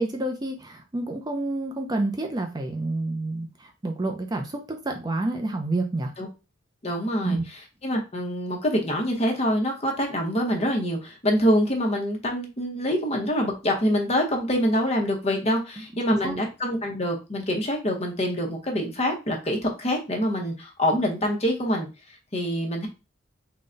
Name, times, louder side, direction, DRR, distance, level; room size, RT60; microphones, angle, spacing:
voice 1, 0.0-6.1 7.2-7.4 16.2-16.3, right 2 dB, 20° right, 4 dB, 0.4 m, -29 dB
voice 2, 6.8-22.9, equal, 35° left, 1 dB, 0.9 m, -25 dB
3.8 x 2.2 x 3.8 m, 0.28 s
head